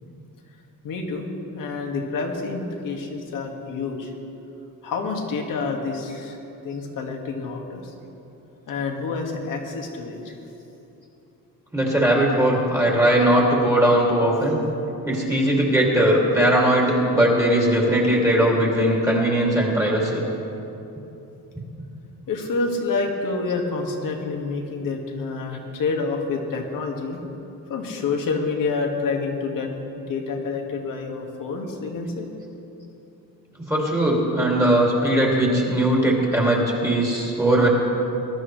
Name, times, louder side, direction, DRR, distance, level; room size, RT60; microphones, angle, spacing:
voice 1, 0.8-4.1 4.8-6.4 6.6-7.9 8.7-10.3 22.3-27.2 27.7-29.7 30.0-32.3, left 4 dB, 65° left, 1 dB, 1.9 m, -28 dB
voice 2, 11.7-14.6 15.0-20.2 33.7-37.7, right 1 dB, 10° right, -4 dB, 2.6 m, -19 dB
21.0 x 12.0 x 3.3 m, 2.9 s
cardioid pair, 125°, 36 cm